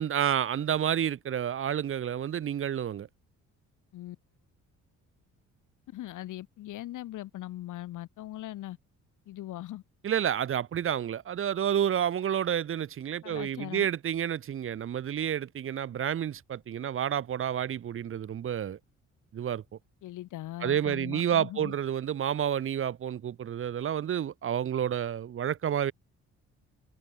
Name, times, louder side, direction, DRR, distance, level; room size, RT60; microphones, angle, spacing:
voice 1, 0.0-3.1 10.0-18.8 19.3-19.6 20.6-25.9, right 9 dB, 45° right, 1.1 m, -30 dB
voice 2, 5.9-8.8 9.3-9.8 13.2-13.9 20.0-21.7, left 14 dB, 85° left, 6.8 m, -40 dB
cardioid pair, 135°, 30 cm